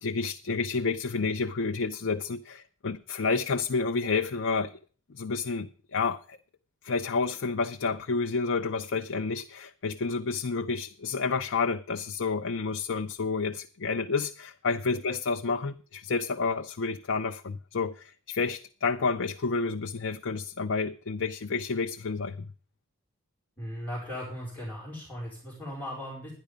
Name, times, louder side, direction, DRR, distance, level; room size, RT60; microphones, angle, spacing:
voice 1, 0.0-4.7 5.1-6.4 6.8-22.5, left 4 dB, 60° left, 0.5 m, -30 dB
voice 2, 23.6-26.3, equal, 5° left, 4.7 m, -37 dB
12.0 x 10.5 x 5.1 m
head